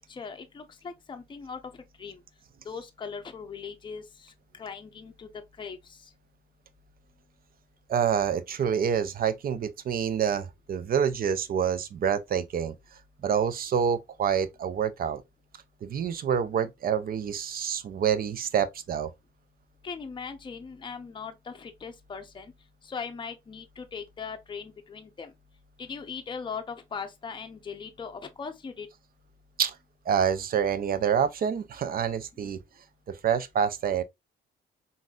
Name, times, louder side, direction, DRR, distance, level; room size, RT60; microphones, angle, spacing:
voice 1, 0.1-1.6 2.0-2.2 2.6-5.3 5.6-6.0 19.8-22.5 22.8-25.3 25.8-28.9 32.4-32.5, left 5 dB, 25° left, 0.6 m, -39 dB
voice 2, 7.9-12.8 13.2-15.2 15.8-19.1 29.6-29.8 30.1-32.6 33.1-34.0, right 8 dB, 50° right, 0.5 m, -27 dB
3.8 x 2.6 x 2.3 m
cardioid pair, 90°, 20 cm